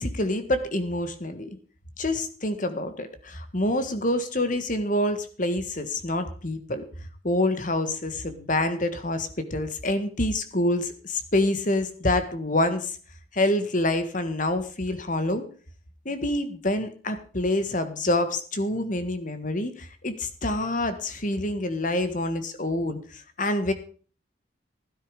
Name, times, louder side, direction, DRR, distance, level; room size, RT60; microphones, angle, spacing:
voice 1, 0.0-1.5 2.0-6.8 7.2-13.0 13.3-15.4 16.1-23.7, left 1 dB, 40° left, 10 dB, 1.7 m, -27 dB
16.0 x 10.0 x 5.2 m, 0.41 s
head